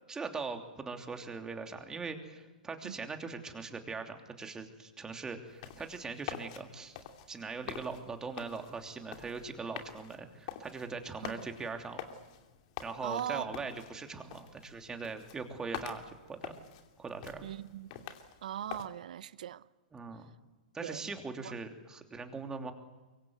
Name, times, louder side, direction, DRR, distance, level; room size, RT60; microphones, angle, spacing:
voice 1, 0.1-7.0 7.3-12.0 12.8-16.6 17.0-17.5 19.9-20.3 20.7-22.7, right 4 dB, 15° right, 3.0 m, -41 dB
sound 1, 5.5-18.9, left 9 dB, 50° left, 2.9 m, -47 dB
voice 2, 13.0-13.5 17.4-17.9 18.4-19.6 20.8-21.0 21.4-21.5, right 11 dB, 65° right, 0.9 m, -39 dB
24.0 x 23.5 x 8.0 m
hypercardioid pair, 115°, 5 cm